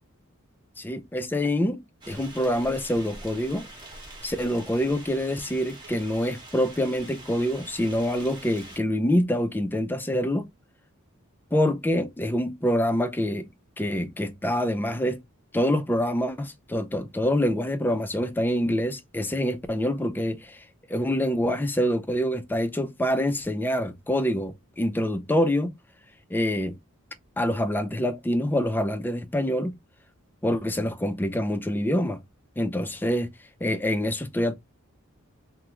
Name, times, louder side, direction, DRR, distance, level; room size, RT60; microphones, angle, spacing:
voice 1, 0.8-3.7 4.2-10.5 11.5-13.5 13.8-15.2 15.5-25.8 26.3-26.8 27.4-29.8 30.4-32.2 32.6-34.5, equal, 10° left, 0.3 m, -26 dB
sound 1, 2.0-8.8, right 2 dB, 20° right, 1.0 m, -45 dB
3.5 x 2.0 x 2.8 m
head